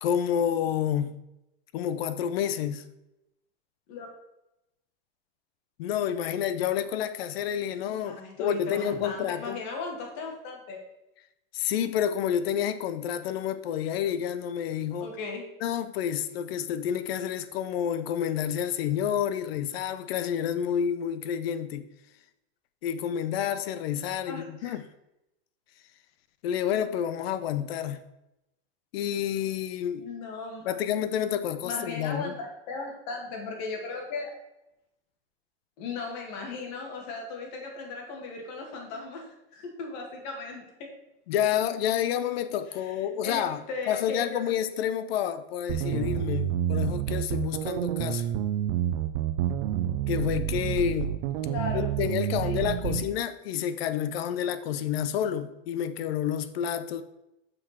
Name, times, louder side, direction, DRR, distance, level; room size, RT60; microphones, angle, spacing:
voice 1, 0.0-1.1 1.7-2.8 5.8-9.6 11.5-15.1 15.6-21.9 22.8-24.8 26.4-28.0 28.9-30.0 30.7-32.3 41.3-48.3 50.1-51.1 51.7-57.0, left 9 dB, 85° left, 0.8 m, -29 dB
voice 2, 8.0-10.8 15.0-15.4 24.3-24.7 30.0-30.7 31.6-34.3 35.8-40.7 42.7-43.0 43.2-44.4 51.5-51.9 52.3-53.1, left 4 dB, 55° left, 2.4 m, -37 dB
sound 1, 45.7-53.1, right 11 dB, 70° right, 0.6 m, -29 dB
6.3 x 4.8 x 6.0 m
supercardioid pair, 150°, 29 cm